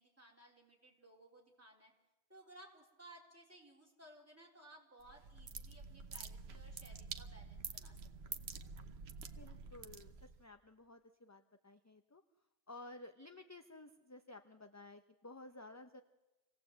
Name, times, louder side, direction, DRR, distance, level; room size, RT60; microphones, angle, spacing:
voice 1, 0.0-1.9 2.3-8.0 8.3-8.4, right 1 dB, 15° right, -1 dB, 3.9 m, -60 dB
sound 1, 5.0-10.4, right 5 dB, 80° right, 1.2 m, -48 dB
voice 2, 9.4-12.2 12.7-16.0, left 2 dB, 20° left, 7 dB, 0.7 m, -54 dB
26.0 x 17.5 x 8.0 m, 1.1 s
omnidirectional pair, 1.0 m